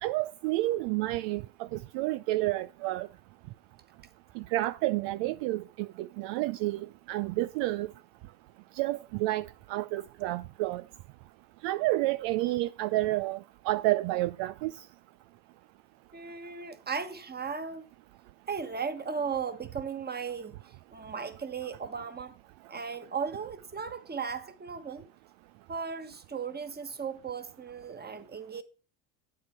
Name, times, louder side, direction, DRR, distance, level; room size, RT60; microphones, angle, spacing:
voice 1, 0.0-3.1 4.4-7.9 8.8-10.8 11.6-13.4 13.6-14.7, right 17 dB, 60° right, 0.5 m, -30 dB
voice 2, 16.1-17.8 18.5-22.3 22.7-25.1 25.7-28.6, right 6 dB, 20° right, 1.4 m, -36 dB
8.7 x 7.8 x 4.4 m
hypercardioid pair, 80°, 49 cm